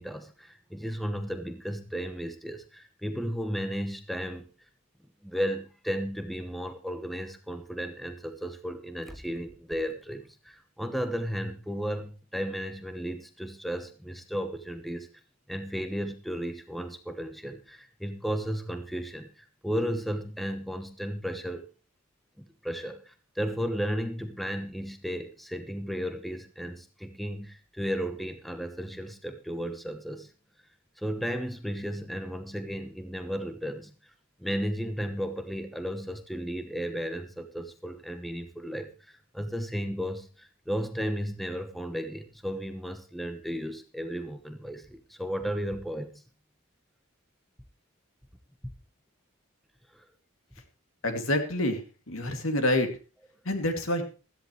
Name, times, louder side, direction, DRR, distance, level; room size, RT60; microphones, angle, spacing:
voice 1, 0.0-4.4 5.2-15.1 15.5-21.6 22.4-30.3 31.0-33.9 34.4-46.2 49.9-50.0, equal, ahead, 8 dB, 1.0 m, -34 dB
voice 2, 51.0-51.8 52.1-52.9 53.5-54.0, left 1 dB, 70° left, 6 dB, 2.6 m, -27 dB
16.0 x 13.5 x 3.2 m, 0.34 s
head